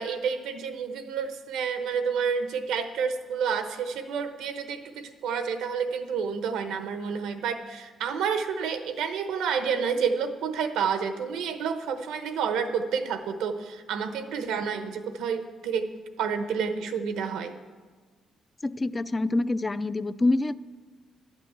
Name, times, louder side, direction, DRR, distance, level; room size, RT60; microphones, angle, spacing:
voice 1, 0.0-15.9 16.2-17.5, right 6 dB, 90° right, 8 dB, 0.9 m, -29 dB
voice 2, 18.6-20.5, left 2 dB, 25° left, 16 dB, 0.3 m, -26 dB
11.0 x 6.0 x 8.1 m, 1.4 s
cardioid pair, 90°, 0 cm